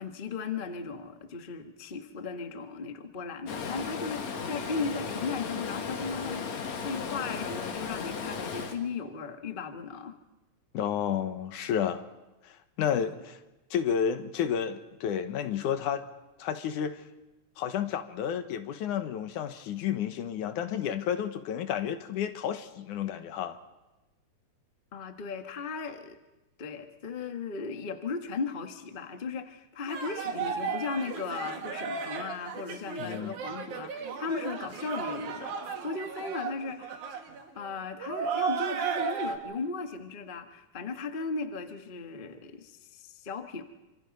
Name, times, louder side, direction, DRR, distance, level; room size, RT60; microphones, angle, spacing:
voice 1, 0.0-10.2 24.9-26.2 26.6-37.1 37.5-43.6, left 4 dB, 35° left, 0.8 m, -36 dB
Stream, 3.5-8.8, left 5 dB, 65° left, 3.1 m, -35 dB
voice 2, 10.7-12.0 12.4-13.4 13.7-16.0 16.4-17.0 17.6-23.6 33.0-33.3, left 8 dB, 80° left, 2.7 m, -31 dB
sound 1, 29.9-39.4, right 6 dB, 75° right, 3.4 m, -35 dB
27.0 x 26.0 x 5.4 m
omnidirectional pair, 3.5 m